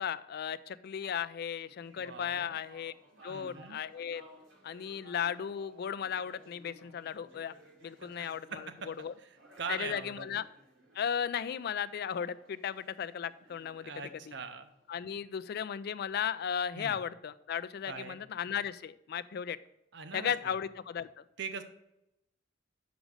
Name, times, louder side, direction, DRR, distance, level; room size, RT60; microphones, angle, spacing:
voice 1, 0.0-2.9 3.2-4.2 4.6-7.5 7.8-9.1 9.7-10.4 11.0-14.1 14.9-19.6 20.1-21.2, left 8 dB, 55° left, 15 dB, 0.3 m, -36 dB
sound 1, 1.5-15.2, equal, 90° right, 2.4 m, -59 dB
voice 2, 1.9-2.6 3.3-3.8 8.0-8.9 9.2-10.3 13.8-14.7 16.7-17.0 17.9-18.2 19.9-20.6 21.4-21.6, right 5 dB, 65° right, 8 dB, 0.8 m, -42 dB
6.1 x 5.1 x 6.4 m, 0.86 s
head